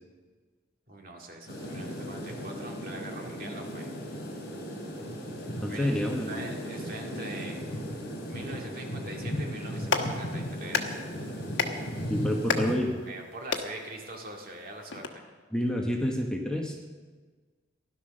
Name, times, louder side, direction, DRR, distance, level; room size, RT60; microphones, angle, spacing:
voice 1, 0.9-3.9 5.6-6.0 6.3-7.6 8.3-11.0 13.1-15.2, right 2 dB, 50° right, 0 dB, 2.1 m, -42 dB
sound 1, 1.5-12.7, equal, 50° left, 3.8 m, -36 dB
voice 2, 5.6-6.4 12.1-13.0 15.5-16.8, equal, 5° left, 0 dB, 1.1 m, -28 dB
Clapping, 9.6-15.1, left 5 dB, 70° left, 1.3 m, -34 dB
15.5 x 11.5 x 6.5 m, 1.4 s
head